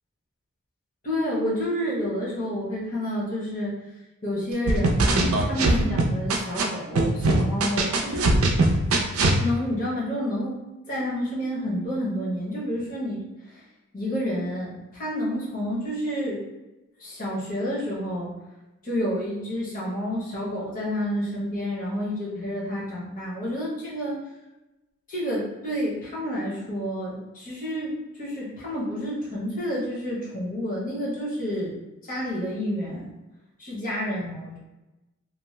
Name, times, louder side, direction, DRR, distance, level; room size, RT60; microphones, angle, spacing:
voice 1, 1.0-3.7 4.2-8.4 9.4-13.2 13.5-13.6 13.9-16.4 17.0-18.3 18.8-24.2 25.1-31.7 32.1-33.1 33.6-34.6, equal, 40° left, -6 dB, 0.9 m, -29 dB
sound 1, 4.7-6.6 7.0-9.4, right 2 dB, 75° right, 0.4 m, -21 dB
2.6 x 2.0 x 3.1 m, 1.0 s
head